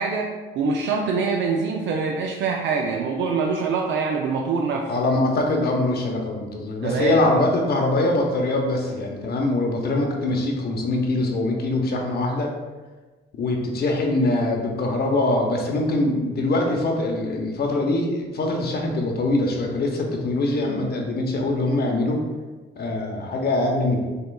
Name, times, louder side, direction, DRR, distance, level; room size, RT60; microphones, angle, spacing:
voice 1, 0.0-4.9 6.8-7.3, right 4 dB, 70° right, 0 dB, 0.4 m, -24 dB
voice 2, 4.9-12.5 13.3-22.2 22.8-24.0, left 2 dB, 50° left, 1 dB, 0.8 m, -23 dB
6.4 x 2.4 x 2.3 m, 1.3 s
cardioid pair, 90°, 20 cm